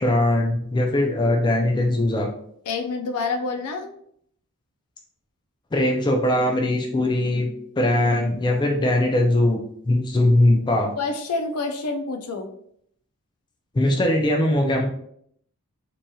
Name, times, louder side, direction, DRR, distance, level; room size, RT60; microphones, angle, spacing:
voice 1, 0.0-2.3 5.7-7.5 7.8-9.6 9.9-10.9 13.7-14.8, left 1 dB, 20° left, 2 dB, 0.3 m, -20 dB
voice 2, 2.7-3.9 11.0-12.5, left 3 dB, 80° left, 6 dB, 0.4 m, -27 dB
3.0 x 2.7 x 2.3 m, 0.67 s
head